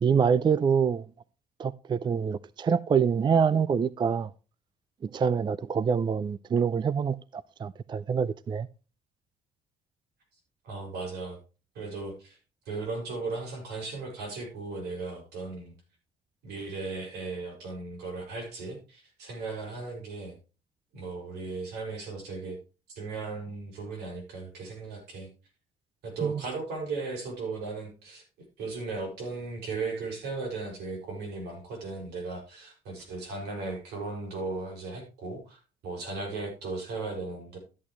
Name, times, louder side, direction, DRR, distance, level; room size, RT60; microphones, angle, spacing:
voice 1, 0.0-1.0 1.6-4.3 5.0-8.7 26.2-26.3, right 6 dB, 25° right, 0.4 m, -26 dB
voice 2, 10.6-11.4 11.7-12.4 12.7-15.7 16.4-20.4 20.9-22.6 22.9-25.3 26.0-37.6, right 3 dB, 80° right, 5.9 m, -36 dB
13.5 x 8.5 x 3.1 m
cardioid pair, 110°, 17 cm